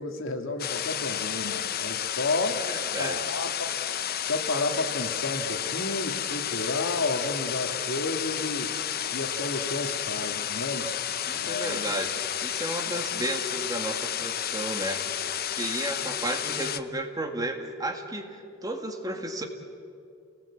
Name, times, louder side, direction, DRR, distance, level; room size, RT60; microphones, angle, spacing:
voice 1, 0.0-2.6 3.0-3.7 4.2-8.7 9.1-10.9 11.3-11.9 12.9-13.1, left 2 dB, 75° left, 5 dB, 2.1 m, -31 dB
sound 1, 0.6-16.8, left 10 dB, 50° left, 0.7 m, -31 dB
voice 2, 2.6-3.2 11.3-15.0 15.5-18.4 18.6-19.4, right 1 dB, 20° right, 4 dB, 2.1 m, -33 dB
30.0 x 19.5 x 8.6 m, 2.4 s
head